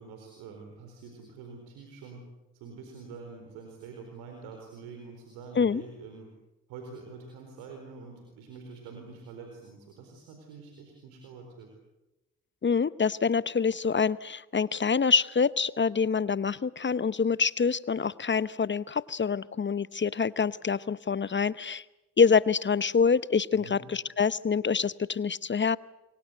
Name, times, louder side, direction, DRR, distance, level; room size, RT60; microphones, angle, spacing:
voice 1, 0.0-2.2 2.5-6.3 6.7-11.7 23.6-23.8, right 4 dB, 80° right, 3 dB, 4.3 m, -46 dB
voice 2, 12.6-21.8 22.2-25.8, left 5 dB, 30° left, 18 dB, 0.8 m, -26 dB
28.0 x 24.0 x 7.9 m, 0.99 s
hypercardioid pair, 45°, 37 cm